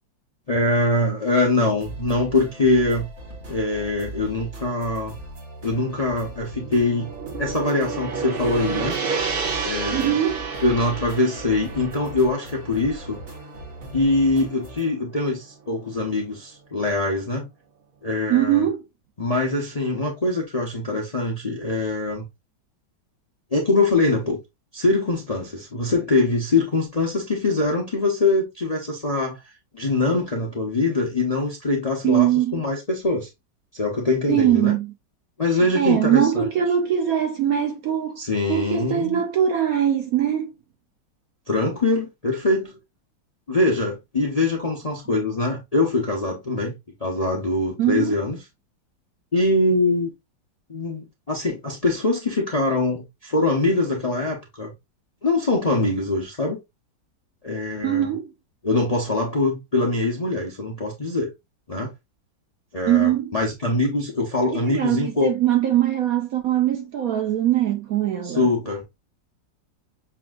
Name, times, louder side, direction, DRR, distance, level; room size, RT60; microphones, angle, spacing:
voice 1, 0.5-3.1 3.5-5.2 5.6-7.1 7.4-8.9 9.6-10.2 10.6-13.2 13.9-17.5 18.0-18.7 19.2-22.2 23.5-24.4 24.7-33.3 33.7-34.8 35.4-36.5 38.2-39.2 41.5-42.8 43.5-46.7 47.0-48.4 49.3-50.1 50.7-54.7 55.2-56.6 57.4-58.1 58.6-61.3 61.7-61.9 62.7-65.3 68.2-68.8, left 2 dB, 35° left, 0.6 m, -23 dB
sound 1, 1.8-14.9, right 1 dB, 40° right, 1.5 m, -39 dB
Gong, 6.5-14.9, right 5 dB, 85° right, 0.4 m, -31 dB
voice 2, 9.9-10.4 18.3-18.8 32.0-32.5 34.3-34.9 35.7-38.2 38.5-40.5 47.8-48.2 57.8-58.3 62.9-63.3 64.5-68.5, right 11 dB, 65° right, 0.9 m, -21 dB
6.8 x 2.7 x 2.4 m
omnidirectional pair, 2.0 m